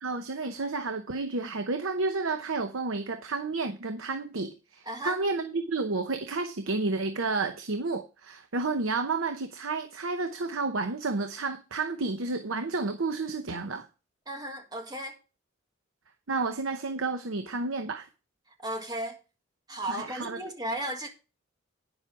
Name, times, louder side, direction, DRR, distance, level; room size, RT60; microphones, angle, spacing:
voice 1, 0.0-13.9 16.3-18.1 19.9-20.4, right 3 dB, 85° right, 0.9 m, -31 dB
voice 2, 4.9-5.2 14.3-15.2 18.6-19.2 19.7-21.1, right 1 dB, 20° right, 1.7 m, -35 dB
9.7 x 7.2 x 4.7 m
head